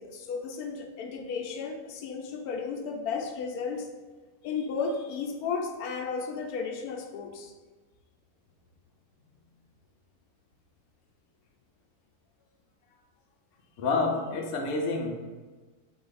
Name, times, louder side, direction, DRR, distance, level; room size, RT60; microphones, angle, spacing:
voice 1, 0.0-3.9 4.4-7.5, left 5 dB, 90° left, 3 dB, 1.1 m, -34 dB
voice 2, 13.8-15.1, left 3 dB, 60° left, 1 dB, 0.9 m, -28 dB
4.3 x 3.2 x 3.9 m, 1.3 s
omnidirectional pair, 1.6 m